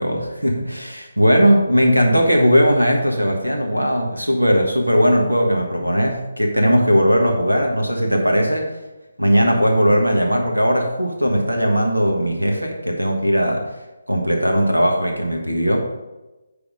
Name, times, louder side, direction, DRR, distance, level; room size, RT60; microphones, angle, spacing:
voice 1, 0.0-8.7 9.2-13.6 14.1-15.8, equal, 85° right, 2 dB, 1.3 m, -18 dB
9.9 x 3.5 x 5.0 m, 1.1 s
figure-of-eight pair, 145°, 0 cm